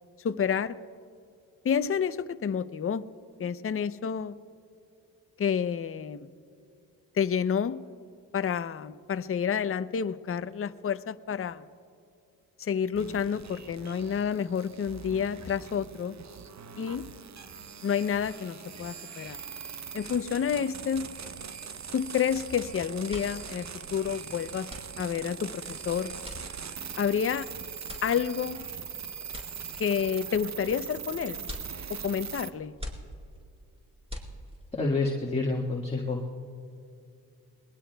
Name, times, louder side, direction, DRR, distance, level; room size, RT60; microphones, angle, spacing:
voice 1, 0.2-0.8 1.6-3.1 3.4-4.3 5.4-6.3 7.1-7.8 8.3-11.6 12.6-16.2 16.8-17.1 17.8-19.4 19.9-21.1 21.9-26.1 27.0-27.5 28.0-28.6 29.8-31.4 31.9-32.8, left 7 dB, 35° left, 13 dB, 0.6 m, -29 dB
sound 1, 12.9-32.5, right 7 dB, 45° right, 0.8 m, -41 dB
sound 2, 23.1-34.8, left 1 dB, 15° right, 4.5 m, -45 dB
voice 2, 34.7-36.2, left 3 dB, 15° left, -1 dB, 1.7 m, -28 dB
27.5 x 21.0 x 2.3 m, 2.5 s
cardioid pair, 55°, 39 cm